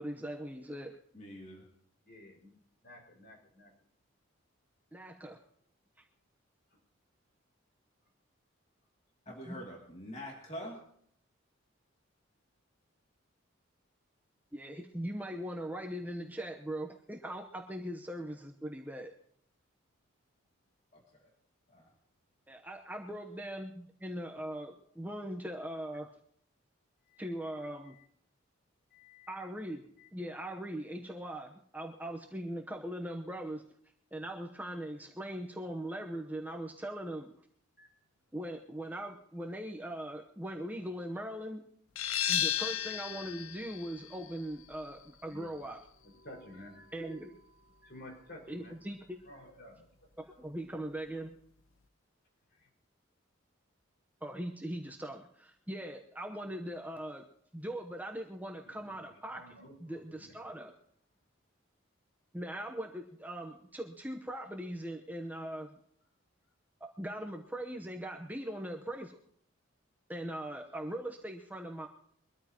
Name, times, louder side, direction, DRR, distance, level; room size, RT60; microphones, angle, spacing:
voice 1, 0.0-1.0 4.9-5.4 9.5-9.6 14.5-19.1 22.5-26.1 27.2-27.9 29.3-29.8 30.1-33.6 34.1-37.3 38.3-41.7 42.3-45.8 46.9-47.3 48.5-49.2 50.4-51.3 54.2-57.2 57.5-59.4 59.8-60.7 62.3-65.8 66.8-69.2 70.1-71.9, right 1 dB, 10° right, 2 dB, 0.9 m, -40 dB
voice 2, 1.1-1.6 9.3-10.8 20.9-21.3 21.7-21.9, equal, 35° left, -2 dB, 2.6 m, -45 dB
voice 3, 2.0-2.6 2.8-3.7 6.7-6.8 23.1-23.2 27.0-27.3 27.8-28.1 28.9-29.5 30.0-30.1 37.8-37.9 45.3-45.7 46.0-47.2 47.8-48.8 49.2-50.0 50.2-50.6 52.5-52.7 58.6-60.4, left 1 dB, 50° left, 0 dB, 5.2 m, -54 dB
sound 1, 42.0-47.4, left 10 dB, 85° left, 0.7 m, -36 dB
23.5 x 13.5 x 3.0 m, 0.65 s
head